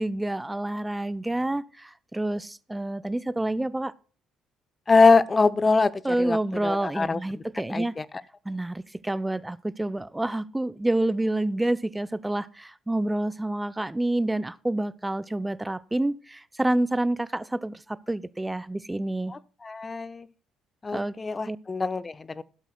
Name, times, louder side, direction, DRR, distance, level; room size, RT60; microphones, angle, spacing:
voice 1, 0.0-3.9 6.0-7.9 8.4-19.3 20.9-21.1 21.4-21.6, right 1 dB, 10° right, 0.6 m, -28 dB
voice 2, 4.9-6.4 6.6-7.2 7.7-8.0 19.3-20.3 20.8-22.4, left 4 dB, 25° left, 0.8 m, -23 dB
16.0 x 12.0 x 2.3 m
figure-of-eight pair, 50°, 0 cm